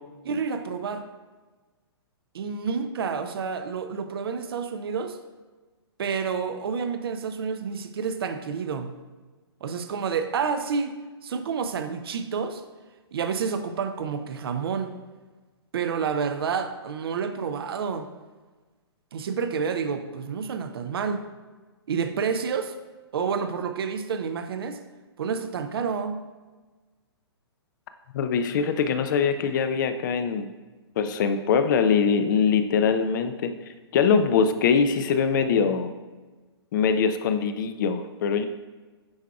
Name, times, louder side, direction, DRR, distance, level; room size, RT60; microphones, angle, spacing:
voice 1, 0.2-1.1 2.3-5.2 6.0-9.0 9.6-11.0 11.2-12.6 13.1-14.9 15.7-18.1 19.1-21.2 21.9-22.7 23.1-24.8 25.2-26.3, right 6 dB, 60° right, 9 dB, 0.6 m, -29 dB
voice 2, 28.1-30.5 31.0-33.5 33.9-35.9 36.7-38.5, left 6 dB, 45° left, 10 dB, 0.5 m, -23 dB
9.6 x 4.6 x 2.3 m, 1.3 s
figure-of-eight pair, 120°, 14 cm